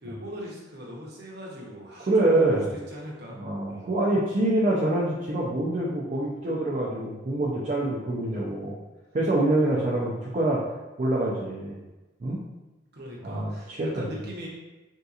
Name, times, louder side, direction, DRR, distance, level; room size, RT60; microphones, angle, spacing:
voice 1, 0.0-3.4 3.7-3.9 12.9-14.5, equal, 55° right, -3 dB, 0.8 m, -40 dB
voice 2, 2.1-2.7 3.4-8.8 9.1-10.6 11.0-11.8 12.2-12.4 13.2-13.5 13.8-14.1, right 1 dB, 40° right, -6 dB, 0.4 m, -25 dB
3.6 x 2.7 x 2.4 m, 1.1 s
head